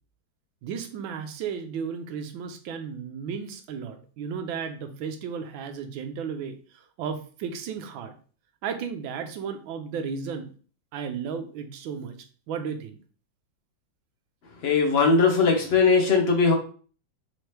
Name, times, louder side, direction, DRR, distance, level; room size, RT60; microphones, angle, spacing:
voice 1, 0.6-8.1 8.6-10.5 10.9-13.0, right 6 dB, 90° right, 8 dB, 1.4 m, -34 dB
voice 2, 14.6-16.5, left 4 dB, 45° left, 2 dB, 0.8 m, -20 dB
4.2 x 3.0 x 3.2 m, 0.40 s
omnidirectional pair, 2.1 m